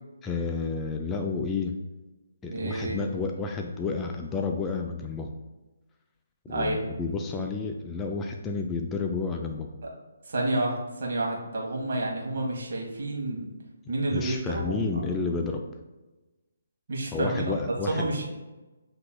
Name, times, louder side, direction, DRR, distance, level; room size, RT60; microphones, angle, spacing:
voice 1, 0.2-1.7 2.4-5.3 6.5-9.8 14.1-15.6 17.1-18.1, left 4 dB, 15° left, 2 dB, 0.3 m, -30 dB
voice 2, 2.5-3.0 6.5-6.8 9.8-9.9 10.2-13.5 13.9-15.1 16.9-17.5 17.9-18.3, right 2 dB, 60° right, -2 dB, 1.3 m, -29 dB
7.6 x 2.9 x 2.2 m, 1.1 s
figure-of-eight pair, 145°, 0 cm